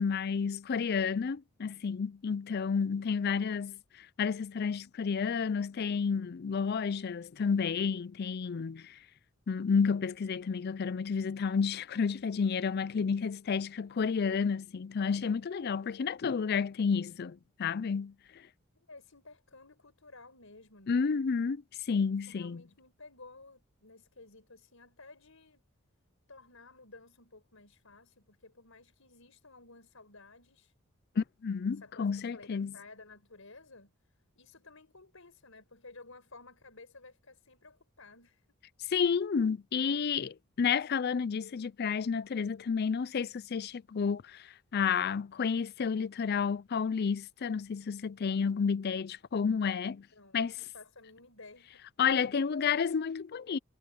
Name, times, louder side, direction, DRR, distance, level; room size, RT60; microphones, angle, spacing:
voice 1, 0.0-3.8 4.2-8.9 9.5-18.1 20.9-21.6 21.9-22.6 31.2-32.7 38.9-44.4 44.7-50.1 50.3-50.5 52.0-53.6, left 6 dB, 50° left, 0.4 m, -31 dB
voice 2, 18.7-21.1 22.2-25.7 26.3-30.7 31.7-38.5 50.1-51.8, left 3 dB, 75° left, 4.8 m, -54 dB
head